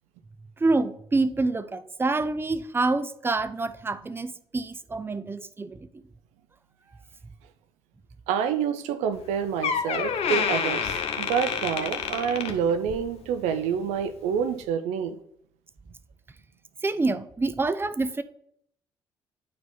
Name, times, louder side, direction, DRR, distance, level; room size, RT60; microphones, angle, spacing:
voice 1, 0.6-6.0 16.8-18.2, right 3 dB, 20° right, 13 dB, 0.6 m, -27 dB
voice 2, 8.3-15.2, right 7 dB, 70° right, 11 dB, 0.6 m, -27 dB
Door, 9.2-9.3 9.6-13.1 13.5-13.8 14.5-14.6, left 7 dB, 55° left, 1.1 m, -28 dB
10.0 x 4.6 x 4.3 m, 0.69 s
figure-of-eight pair, 45°, 12 cm